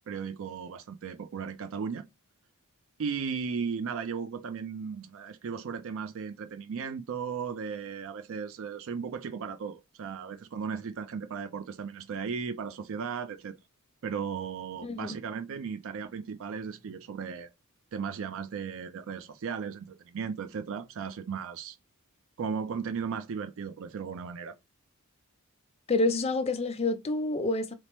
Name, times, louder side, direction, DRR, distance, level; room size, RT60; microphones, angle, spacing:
voice 1, 0.1-2.0 3.0-13.5 14.0-17.5 17.9-21.8 22.4-24.6, right 6 dB, 60° right, 0.4 m, -36 dB
voice 2, 14.8-15.2 25.9-27.7, left 2 dB, 25° left, 0.4 m, -28 dB
4.2 x 2.0 x 3.0 m
head